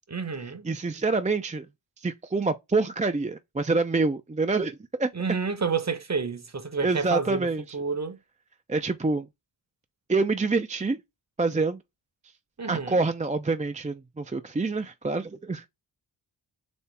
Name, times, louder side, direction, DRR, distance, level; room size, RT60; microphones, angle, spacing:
voice 1, 0.1-0.7 5.1-8.2 12.6-13.0, right 5 dB, 35° right, 0.9 m, -30 dB
voice 2, 0.6-1.7 2.0-5.1 6.8-7.6 8.7-9.3 10.1-11.0 11.4-11.8 12.7-15.6, right 3 dB, 15° right, 0.5 m, -26 dB
4.3 x 2.8 x 3.4 m
cardioid pair, 45°, 49 cm